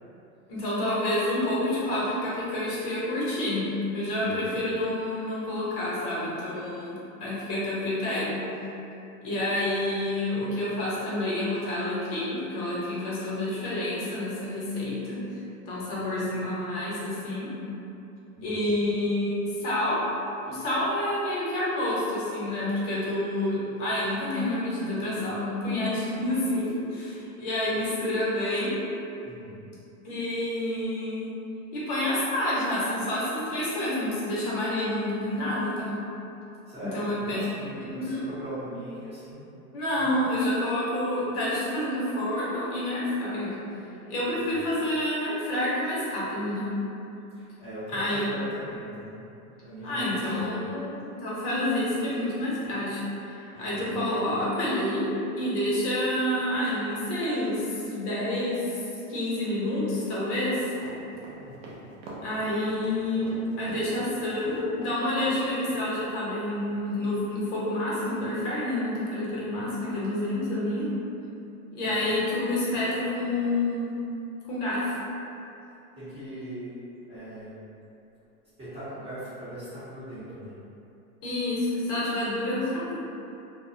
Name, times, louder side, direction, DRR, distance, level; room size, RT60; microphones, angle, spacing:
voice 1, 0.5-3.7 3.9-8.4 9.2-15.2 15.7-17.5 18.4-20.0 20.4-28.8 30.0-31.3 31.7-36.0 36.8-37.4 37.9-38.2 39.7-43.5 44.1-46.7 47.9-48.3 49.8-55.0 55.3-58.8 59.1-60.7 62.2-70.9 71.7-74.0 74.5-75.0 81.2-82.9, left 1 dB, 50° left, -8 dB, 0.9 m, -28 dB
voice 2, 4.2-4.6 15.8-16.4 18.3-18.9 29.2-29.6 36.7-39.4 39.9-40.1 44.2-44.7 47.3-49.2 49.6-50.5 53.5-53.9 61.4-61.7 71.8-72.0 76.0-76.8 77.1-77.6 78.6-80.5, equal, 15° right, -15 dB, 0.9 m, -40 dB
sound 1, 60.7-65.0 65.3-65.4 65.7-65.8, right 2 dB, 40° right, 0.5 m, -43 dB
2.2 x 2.0 x 2.7 m, 2.8 s
hypercardioid pair, 125°, 44 cm